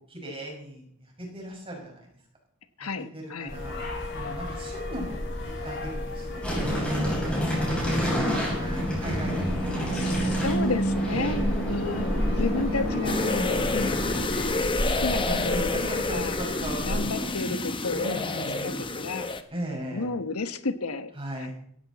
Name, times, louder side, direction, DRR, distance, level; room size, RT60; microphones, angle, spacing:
voice 1, 0.1-2.1 2.8-3.8 4.1-10.2 11.1-11.5 11.9-14.2 14.8-17.3 17.9-19.0 19.5-20.1 21.1-21.5, equal, 25° right, 0 dB, 5.7 m, -38 dB
voice 2, 2.8-3.5 9.9-11.4 11.7-14.0 15.0-15.8 16.1-16.3 16.9-19.3 19.9-21.1, left 3 dB, 90° left, 11 dB, 1.2 m, -32 dB
sound 1, 3.5-17.0, left 1 dB, 60° left, 7.4 m, -33 dB
sound 2, 6.4-14.3, equal, 5° left, 7.2 m, -28 dB
sound 3, 13.0-19.4, left 3 dB, 25° left, 1.0 m, -29 dB
17.0 x 15.0 x 4.2 m, 0.64 s
head